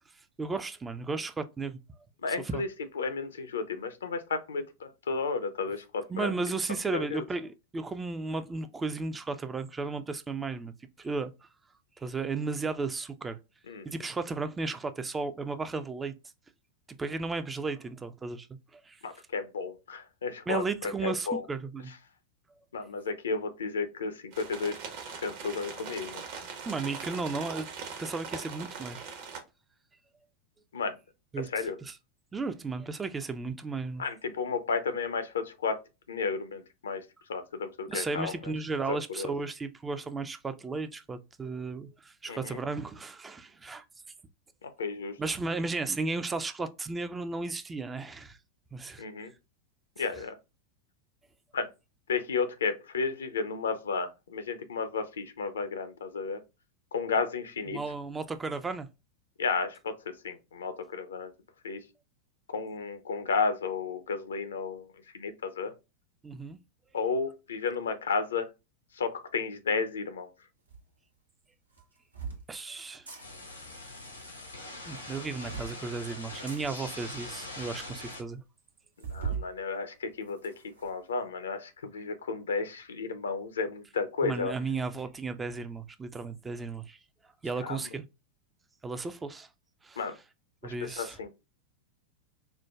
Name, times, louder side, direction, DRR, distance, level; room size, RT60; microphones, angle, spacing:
voice 1, 0.1-1.8 2.3-2.6 6.1-11.5 12.0-13.4 13.8-16.1 17.0-18.5 18.7-19.0 20.5-21.9 26.7-27.7 28.0-29.4 31.3-32.0 32.3-34.0 37.9-43.9 45.2-48.4 48.7-49.1 50.0-50.3 57.7-58.9 66.2-66.6 72.5-73.1 74.9-78.4 84.2-87.0 87.4-88.1 88.8-89.5 89.8-90.1 90.6-91.2, right 3 dB, 15° right, 0.3 m, -34 dB
voice 2, 2.2-2.7 3.0-6.3 6.9-7.2 13.7-13.9 19.0-21.4 22.7-24.8 25.1-26.2 30.7-30.9 31.5-31.8 34.0-35.8 36.1-37.0 37.3-38.3 39.2-39.3 42.3-42.6 44.8-45.2 49.0-49.3 50.0-50.3 51.5-51.7 52.1-56.4 56.9-57.8 59.4-59.9 60.2-61.3 61.6-61.8 62.5-64.9 65.1-65.7 66.9-68.5 69.0-70.3 79.1-80.5 80.8-84.5 87.6-87.8 90.0-90.1 90.6-91.3, left 4 dB, 65° left, 0.5 m, -32 dB
sound 1, 24.3-29.4, right 5 dB, 50° right, 0.8 m, -41 dB
sound 2, 70.7-70.8 71.7-72.4 72.9-73.2 74.9-75.8 76.5-76.6 77.3-77.4 77.6-77.7 78.0-78.1 79.0-79.5 79.9-80.9, right 6 dB, 80° right, 0.9 m, -38 dB
sound 3, 73.2-78.2, left 2 dB, 85° left, 0.9 m, -43 dB
4.4 x 2.1 x 2.2 m
figure-of-eight pair, 90°, 0 cm